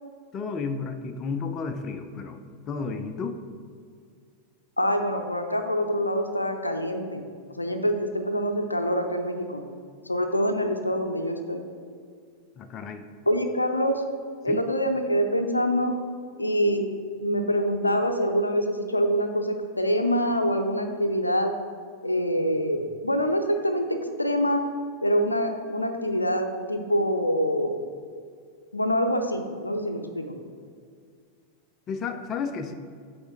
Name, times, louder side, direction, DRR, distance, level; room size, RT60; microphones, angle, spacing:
voice 1, 0.3-3.4 12.6-13.0 14.5-14.6 31.9-32.7, left 5 dB, 30° left, 7 dB, 0.5 m, -32 dB
voice 2, 4.8-7.2 7.5-9.6 10.1-11.6 13.3-14.0 14.4-15.9 16.4-16.9 17.2-21.5 22.0-24.6 25.0-27.8 28.7-30.3, equal, 85° left, 6 dB, 0.5 m, -25 dB
7.9 x 3.3 x 4.7 m, 2.1 s
figure-of-eight pair, 90°, 0 cm